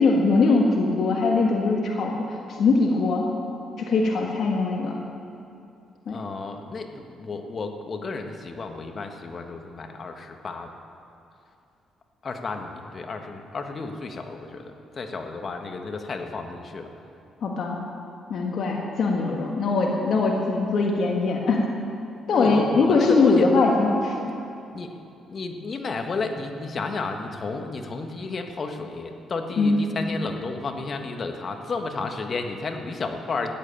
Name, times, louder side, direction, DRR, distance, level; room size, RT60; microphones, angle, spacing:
voice 1, 0.0-3.2 3.8-4.9 6.1-6.2 17.4-17.8 18.3-21.9 22.3-24.4 29.6-29.8, left 3 dB, 60° left, -1 dB, 1.8 m, -22 dB
voice 2, 6.1-10.7 12.2-16.9 22.4-23.5 24.7-25.0 25.3-33.5, left 3 dB, 45° left, 5 dB, 1.6 m, -32 dB
15.0 x 9.4 x 8.9 m, 2.6 s
cardioid pair, 90°, 0 cm